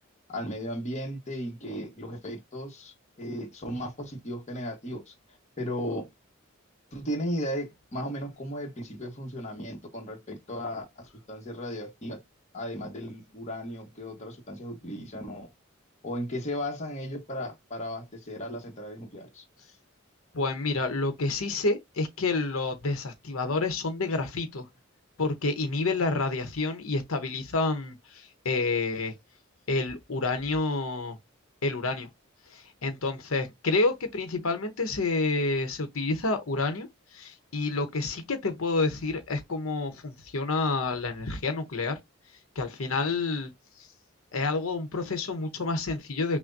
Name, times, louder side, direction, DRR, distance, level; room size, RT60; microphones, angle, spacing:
voice 1, 0.3-5.1 5.6-6.1 6.9-12.2 12.5-15.5 16.0-19.4, equal, 35° left, 1.1 m, -35 dB
voice 2, 20.3-24.7 25.2-29.1 29.7-31.2 31.6-32.1 32.5-42.0 42.6-43.5 43.8-43.9 44.3-46.4, left 3 dB, 80° left, 0.9 m, -29 dB
5.9 x 2.1 x 2.6 m
head